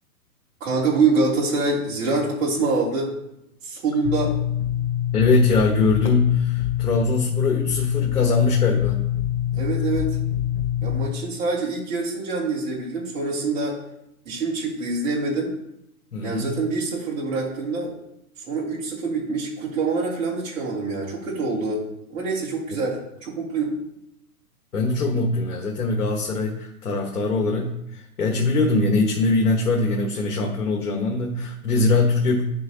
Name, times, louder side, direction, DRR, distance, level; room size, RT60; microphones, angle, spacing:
voice 1, 0.6-3.1 3.6-4.3 9.6-10.1 10.8-13.8 14.2-15.5 16.2-17.9 18.4-21.8 22.1-23.7, right 3 dB, 60° right, -6 dB, 3.2 m, -25 dB
sound 1, 4.0-11.1, left 11 dB, 35° left, 0.6 m, -25 dB
voice 2, 5.1-9.0 16.1-16.5 24.7-32.4, left 3 dB, 90° left, 1 dB, 1.5 m, -22 dB
10.0 x 6.2 x 2.9 m, 0.81 s
hypercardioid pair, 140°, 44 cm